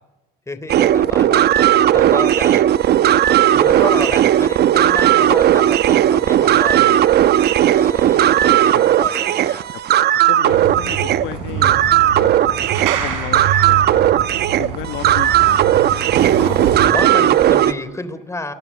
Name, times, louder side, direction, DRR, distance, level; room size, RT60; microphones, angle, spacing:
voice 1, 0.5-1.5 1.9-2.7 3.5-6.9 7.7-9.6 12.4-12.7 16.7-18.5, left 2 dB, 15° left, 13 dB, 3.4 m, -30 dB
sound 1, 0.7-17.7, right 12 dB, 55° right, 1.0 m, -15 dB
voice 2, 10.3-11.8 12.2-12.3 12.8-13.8 14.6-17.3, left 14 dB, 70° left, 10 dB, 1.2 m, -33 dB
sound 2, 10.5-16.9, right 8 dB, 85° right, 5.5 m, -26 dB
28.5 x 19.5 x 8.4 m, 1.0 s
supercardioid pair, 75°, 20 cm